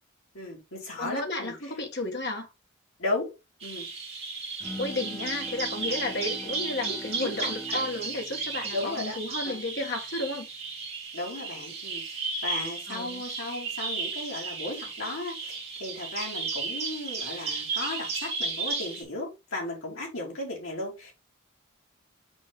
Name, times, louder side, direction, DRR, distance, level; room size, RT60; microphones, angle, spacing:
voice 1, 0.3-1.5 3.0-3.3 3.6-3.9 7.2-7.9 8.4-8.5 8.7-9.2 9.4-9.6 11.1-21.1, left 2 dB, 65° left, 3.7 m, -35 dB
voice 2, 1.0-2.5 4.8-10.5 12.9-13.2, left 2 dB, 50° left, 1.9 m, -33 dB
Bird vocalization bird call bird song, 3.6-19.0, right 4 dB, 30° right, 2.5 m, -34 dB
Bowed string instrument, 4.6-10.0, left 1 dB, 10° left, 1.2 m, -44 dB
6.2 x 4.6 x 3.7 m
head